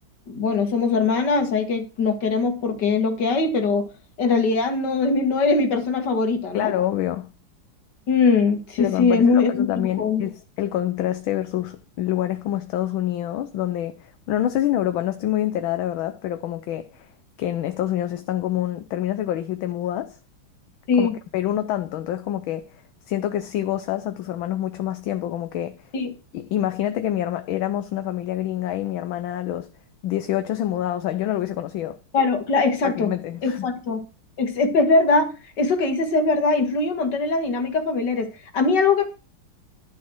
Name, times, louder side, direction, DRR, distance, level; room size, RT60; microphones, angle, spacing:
voice 1, 0.3-3.9 4.2-6.7 8.1-10.2 20.9-21.1 25.9-26.1 32.1-33.1 33.4-34.0 34.4-35.3 35.6-39.1, left 4 dB, 55° left, 2.4 m, -21 dB
voice 2, 6.5-7.3 8.8-17.1 17.4-20.2 21.0-22.8 23.1-25.9 26.3-29.7 30.0-32.0 32.8-33.7, left 12 dB, 75° left, 1.5 m, -26 dB
11.5 x 6.4 x 6.2 m
omnidirectional pair, 2.3 m